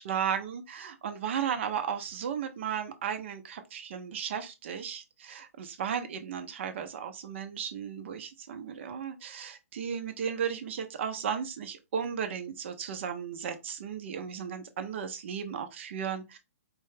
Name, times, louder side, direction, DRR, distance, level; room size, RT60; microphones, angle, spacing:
voice 1, 0.0-16.4, right 7 dB, 55° right, 0.7 m, -35 dB
4.5 x 2.2 x 3.2 m
hypercardioid pair, 140°, 8 cm